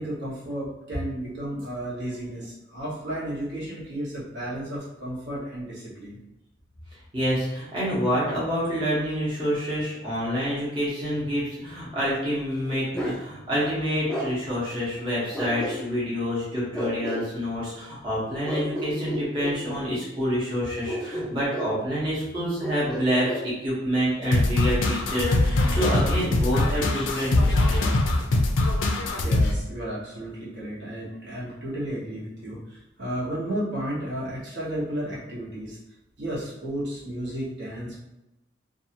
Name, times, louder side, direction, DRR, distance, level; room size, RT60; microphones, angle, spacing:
voice 1, 0.0-6.2 28.9-35.8 36.2-38.0, right 1 dB, 60° right, -8 dB, 1.0 m, -33 dB
voice 2, 7.1-27.9, equal, 25° right, -9 dB, 0.9 m, -27 dB
Bark, 12.9-13.2 14.1-14.3 15.3-16.1 16.7-17.3 18.4-19.6 20.9-21.8 22.6-23.5, equal, 5° left, 0.3 m, -31 dB
sound 1, 24.3-29.6, left 2 dB, 75° left, 0.4 m, -22 dB
2.7 x 2.4 x 2.8 m, 0.94 s
head